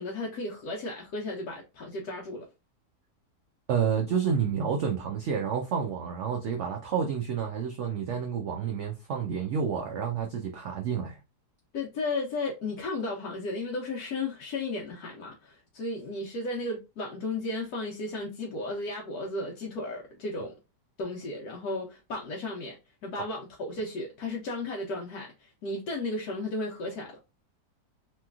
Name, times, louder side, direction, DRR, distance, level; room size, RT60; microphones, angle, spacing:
voice 1, 0.0-2.4 11.7-20.5 21.0-22.8 23.0-27.2, left 2 dB, 70° left, 1.1 m, -34 dB
voice 2, 3.7-11.2 23.1-23.2, right 7 dB, 85° right, 0.6 m, -29 dB
3.1 x 3.0 x 2.3 m
omnidirectional pair, 1.8 m